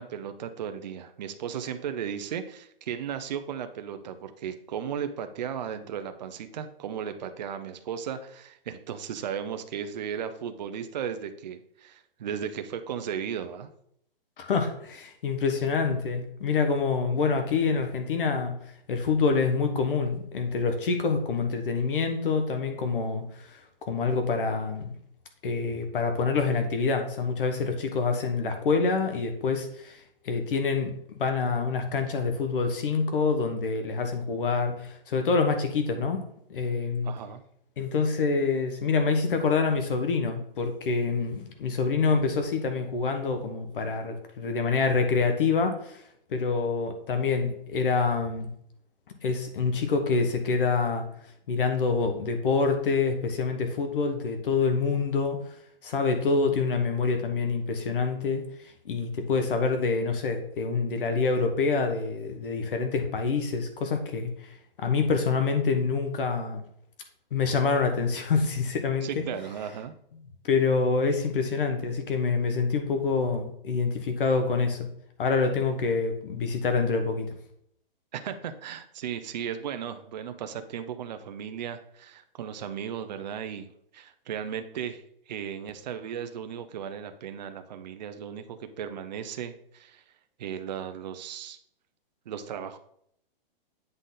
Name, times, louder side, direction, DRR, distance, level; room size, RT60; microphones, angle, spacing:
voice 1, 0.0-13.7 37.0-37.4 69.0-69.9 78.1-83.7 83.9-90.0 90.4-91.6 92.3-92.8, right 8 dB, 50° right, 8 dB, 0.6 m, -36 dB
voice 2, 14.4-18.5 18.9-23.6 23.9-24.9 25.4-30.0 30.2-30.9 31.2-36.2 36.5-37.1 37.8-46.0 46.3-48.5 49.2-51.1 51.5-55.4 55.8-58.4 58.8-66.6 67.3-69.2 70.5-74.9 75.2-77.3, left 4 dB, 65° left, 6 dB, 1.2 m, -26 dB
8.1 x 3.9 x 3.8 m, 0.69 s
hypercardioid pair, 170°, 29 cm